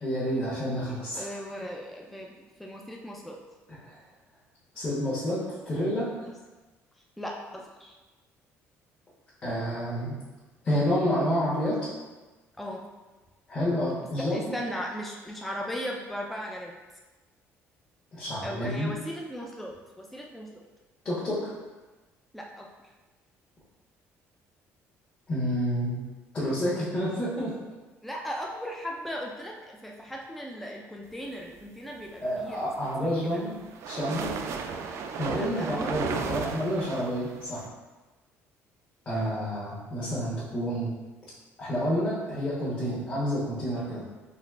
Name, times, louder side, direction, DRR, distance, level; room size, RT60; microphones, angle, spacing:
voice 1, 0.0-1.4 3.8-4.0 4.7-6.1 9.4-10.2 10.6-11.9 13.5-14.6 18.1-18.9 21.0-21.5 25.3-26.0 26.3-27.6 32.2-33.6 33.9-34.4 35.2-37.6 39.0-40.9 41.6-44.0, equal, 30° left, -9 dB, 1.4 m, -29 dB
voice 2, 1.2-2.3 2.6-3.4 6.2-6.3 7.2-8.0 12.6-12.9 14.2-16.7 18.4-20.6 22.3-22.7 28.0-32.7 33.0-33.4 35.3-36.5, equal, ahead, -1 dB, 0.4 m, -37 dB
sound 1, 32.6-37.7, right 5 dB, 60° right, 0.4 m, -35 dB
4.2 x 3.1 x 3.7 m, 1.2 s
cardioid pair, 120°, 5 cm